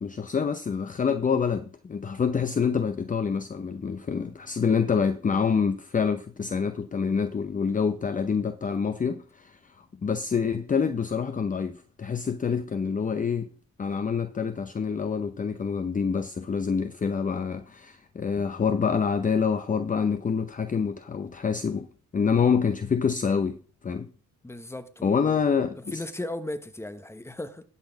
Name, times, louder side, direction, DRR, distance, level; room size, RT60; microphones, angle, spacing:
voice 1, 0.0-13.5 13.8-21.9 22.1-24.1 25.0-26.0, left 6 dB, 25° left, 0.7 m, -26 dB
voice 2, 24.4-25.4 25.9-27.6, left 1 dB, 10° left, 1.2 m, -36 dB
11.5 x 4.3 x 7.0 m
cardioid pair, 90°, 30 cm